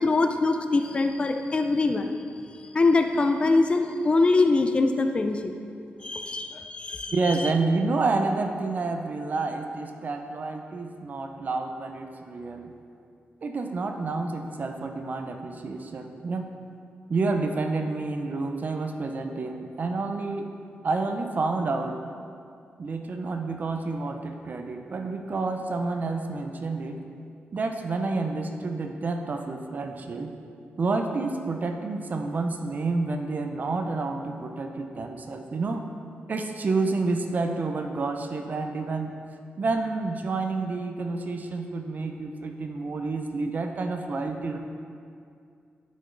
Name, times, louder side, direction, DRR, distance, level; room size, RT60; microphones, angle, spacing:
voice 1, 0.0-2.1 2.7-5.5 6.0-7.5, left 3 dB, 30° left, 5 dB, 0.4 m, -23 dB
voice 2, 7.1-12.7 13.4-16.5 17.1-20.5 20.8-22.0 22.8-27.0 27.5-30.3 30.8-35.8 36.3-39.2 39.6-44.6, right 3 dB, 45° right, 5 dB, 0.5 m, -29 dB
8.3 x 6.0 x 3.8 m, 2.4 s
wide cardioid pair, 130°, 4 cm